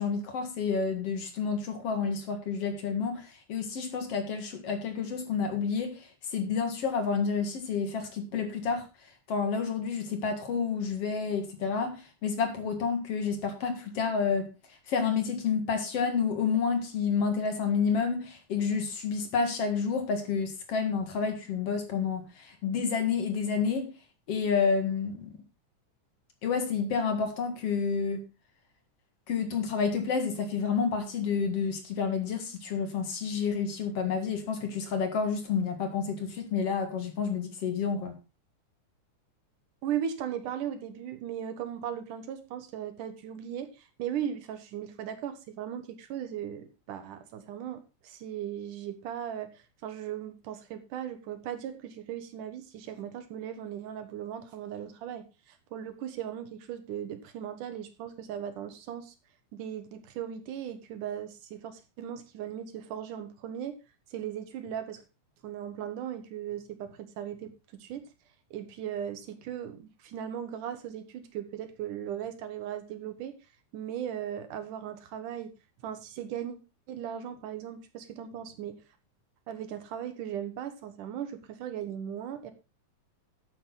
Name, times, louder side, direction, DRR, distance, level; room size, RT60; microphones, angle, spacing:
voice 1, 0.0-6.0 6.3-8.9 9.3-14.5 14.9-23.9 24.3-25.3 26.4-28.2 29.3-38.1, left 5 dB, 55° left, 2.7 m, -29 dB
voice 2, 39.8-59.1 59.5-63.8 64.1-65.0 65.4-68.0 68.5-73.3 73.7-75.5 75.8-76.6 76.9-78.8 79.5-82.5, right 9 dB, 85° right, 3.0 m, -38 dB
11.5 x 9.2 x 3.9 m
omnidirectional pair, 3.5 m